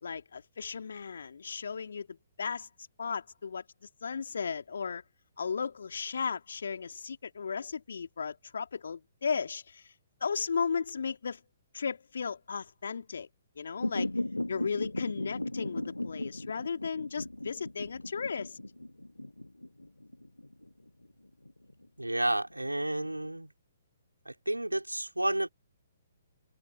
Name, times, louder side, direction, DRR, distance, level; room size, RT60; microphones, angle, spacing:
voice 1, 0.0-2.7 3.0-3.6 4.0-5.0 5.4-9.9 10.2-11.4 11.7-13.3 13.6-14.1 14.5-18.6, left 6 dB, 60° left, 2.9 m, -35 dB
sound 1, 13.8-22.7 23.0-23.1, left 1 dB, 85° left, 4.9 m, -37 dB
voice 2, 22.0-23.5 24.3-25.5, right 1 dB, 85° right, 3.6 m, -31 dB
figure-of-eight pair, 125°, 0 cm